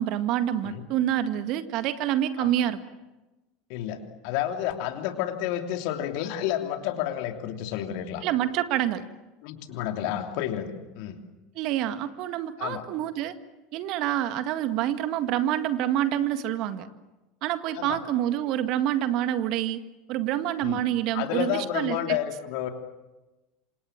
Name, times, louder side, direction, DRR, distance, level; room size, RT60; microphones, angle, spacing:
voice 1, 0.0-2.8 8.2-9.1 11.6-13.3 13.7-16.9 17.4-19.8 20.1-22.2, right 12 dB, 55° right, 10 dB, 1.8 m, -27 dB
voice 2, 3.7-8.2 9.4-11.2 12.6-12.8 17.7-18.0 20.6-20.8 21.1-22.7, left 11 dB, 60° left, 5 dB, 3.1 m, -30 dB
27.5 x 26.5 x 7.5 m, 1.1 s
hypercardioid pair, 75°, 0 cm